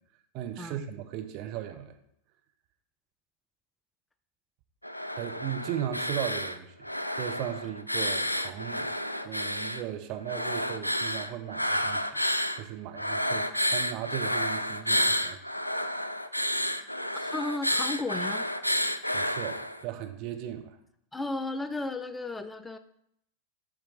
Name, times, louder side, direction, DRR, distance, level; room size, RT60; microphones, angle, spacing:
voice 1, 0.3-2.0 5.1-6.9 7.1-8.9 9.2-12.2 12.6-15.4 19.1-20.8, right 10 dB, 40° right, 7 dB, 0.7 m, -37 dB
sound 1, 4.8-6.6 6.8-9.8 10.3-12.6 13.0-19.8, equal, 85° left, 0.3 m, -30 dB
voice 2, 17.2-18.5 21.1-22.8, left 2 dB, 10° left, 10 dB, 0.3 m, -34 dB
7.3 x 4.8 x 3.3 m, 0.74 s
figure-of-eight pair, 90°, 0 cm